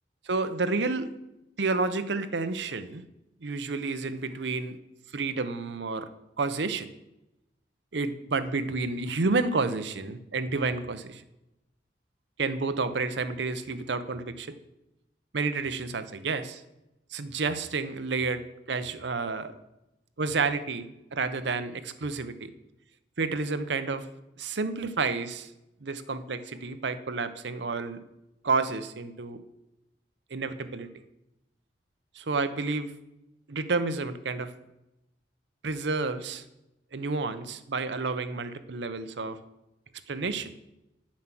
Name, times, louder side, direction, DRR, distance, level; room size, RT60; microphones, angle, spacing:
voice 1, 0.3-1.1 1.6-3.0 3.4-4.8 5.1-6.1 6.4-6.9 7.9-11.2 12.4-14.5 15.3-16.6 17.1-19.5 20.2-22.5 23.2-24.1 24.4-25.5 25.8-28.0 28.4-29.4 30.3-30.9 32.1-32.9 33.5-34.5 35.6-36.4 36.9-39.4 40.1-40.5, right 4 dB, 70° right, 10 dB, 0.7 m, -30 dB
8.9 x 7.3 x 6.0 m, 0.92 s
head